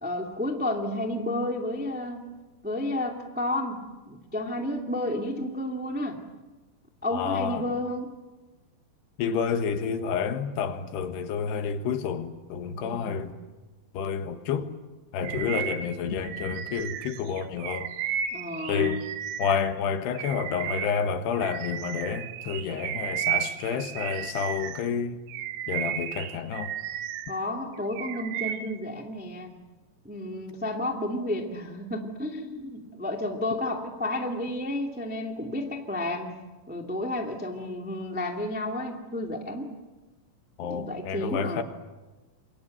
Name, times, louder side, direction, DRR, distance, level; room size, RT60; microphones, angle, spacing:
voice 1, 0.0-2.2 2.6-6.2 7.0-8.1 12.8-13.3 15.4-15.6 18.3-19.0 27.3-29.5 30.0-36.3 36.7-39.7 40.6-41.6, left 1 dB, 10° right, 0.4 m, -31 dB
voice 2, 7.1-7.7 9.2-13.3 13.9-14.7 15.1-17.9 18.7-19.0 19.4-25.2 25.7-26.7 40.6-41.6, left 6 dB, 70° left, 3.5 m, -29 dB
Bird vocalization bird call bird song, 15.2-19.7 20.1-24.9 25.3-27.4 27.7-28.8, right 10 dB, 75° right, 2.9 m, -34 dB
28.0 x 24.5 x 7.9 m
omnidirectional pair, 5.2 m